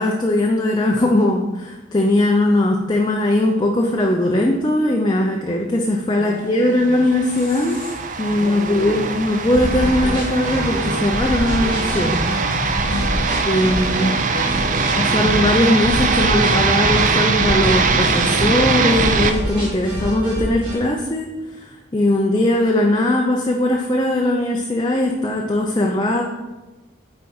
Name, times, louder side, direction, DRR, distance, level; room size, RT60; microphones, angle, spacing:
voice 1, 0.0-7.8 8.2-12.3 12.6-12.8 13.5-14.2 15.0-26.2, left 1 dB, 25° left, 1 dB, 0.5 m, -19 dB
voice 2, 6.2-7.1 7.4-8.0 8.3-9.2 12.8-15.0, left 2 dB, 85° left, 1 dB, 0.7 m, -33 dB
sound 1, 6.8-19.3, right 4 dB, 40° right, 0.4 m, -21 dB
sound 2, 9.5-20.7, equal, 25° right, 2.4 m, -26 dB
8.4 x 4.3 x 4.3 m, 1.1 s
head